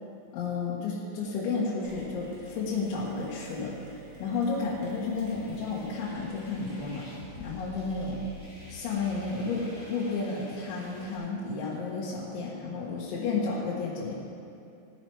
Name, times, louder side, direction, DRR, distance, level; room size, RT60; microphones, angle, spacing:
voice 1, 0.3-3.8 4.2-7.1 7.4-8.2 8.7-14.1, left 4 dB, 90° left, -6 dB, 3.9 m, -32 dB
Mechanisms, 1.8-9.0, right 1 dB, 75° right, 5.4 m, -50 dB
sound 1, 5.2-11.2, left 2 dB, 15° left, 3.4 m, -47 dB
17.0 x 9.1 x 4.7 m, 2.6 s
omnidirectional pair, 5.2 m